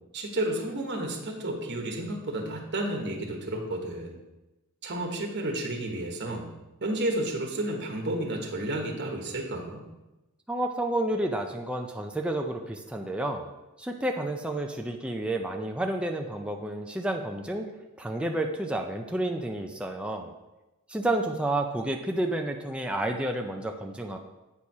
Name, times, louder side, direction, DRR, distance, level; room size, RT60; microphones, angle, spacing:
voice 1, 0.1-4.2 4.8-6.5 6.8-9.8, right 1 dB, 50° right, 0 dB, 1.2 m, -31 dB
voice 2, 10.5-13.5 13.8-17.6 18.0-20.3 20.9-24.2, right 1 dB, 5° right, 2 dB, 0.5 m, -30 dB
8.3 x 4.4 x 4.8 m, 1.0 s
head